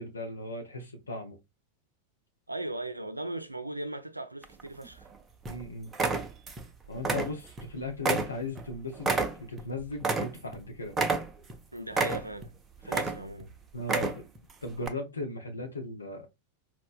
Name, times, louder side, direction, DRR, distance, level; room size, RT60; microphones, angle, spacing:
voice 1, 0.0-1.4 5.5-5.9 6.9-11.0 12.8-13.0 13.7-14.2 14.6-16.3, left 2 dB, 75° left, 0.7 m, -37 dB
voice 2, 2.5-5.1 11.7-12.5 12.8-13.5, right 1 dB, 85° right, 0.3 m, -38 dB
sound 1, 4.4-5.1 5.5-5.6 5.9-6.7 7.0-7.7 8.0-10.6 10.9-11.6 11.9-12.5 12.8-13.4 13.8-14.4 14.8-14.9, right 3 dB, 20° right, 0.5 m, -29 dB
4.2 x 2.1 x 2.4 m
figure-of-eight pair, 90°, 0 cm